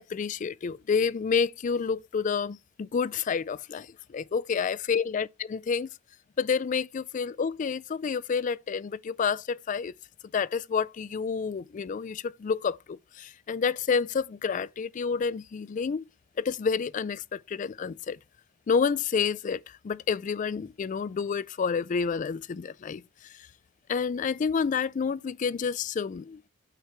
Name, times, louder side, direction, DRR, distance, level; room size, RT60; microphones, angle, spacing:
voice 1, 0.0-5.9 6.4-9.9 10.3-16.0 16.4-18.2 18.7-23.5 23.9-26.4, left 6 dB, 40° left, 0.3 m, -29 dB
7.3 x 5.8 x 3.3 m
head